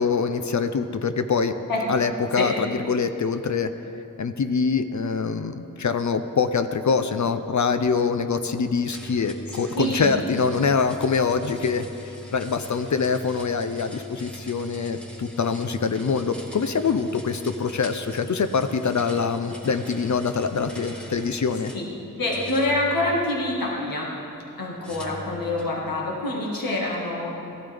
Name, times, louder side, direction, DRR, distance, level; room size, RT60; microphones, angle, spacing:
voice 1, 0.0-1.5 1.9-3.7 4.2-11.9 12.3-21.7, left 5 dB, 60° left, 9 dB, 0.6 m, -24 dB
sound 1, 8.9-21.9 22.2-23.7 24.8-25.8, left 1 dB, 5° left, 1.8 m, -42 dB
voice 2, 9.8-10.1 21.7-21.9 22.2-24.1 24.6-27.4, left 1 dB, 85° left, -3 dB, 1.8 m, -26 dB
16.0 x 12.0 x 3.5 m, 2.8 s
cardioid pair, 55°, 34 cm